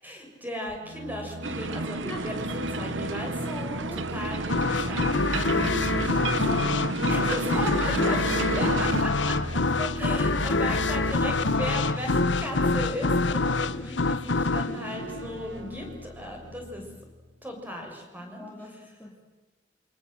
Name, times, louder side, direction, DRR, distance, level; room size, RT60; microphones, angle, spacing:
voice 1, 0.0-3.6 3.9-6.1 7.1-16.9 17.4-19.0, equal, 10° right, 1 dB, 6.7 m, -37 dB
sound 1, 0.7-17.3, equal, 65° right, 2.0 m, -38 dB
sound 2, 1.4-9.0, right 3 dB, 90° right, 1.1 m, -32 dB
voice 2, 3.4-4.1 5.5-6.8 7.2-7.3 18.4-19.2, left 1 dB, 10° left, -2 dB, 3.3 m, -39 dB
sound 3, 4.5-16.0, left 3 dB, 75° left, 1.2 m, -26 dB
28.5 x 26.0 x 7.9 m, 1.2 s
head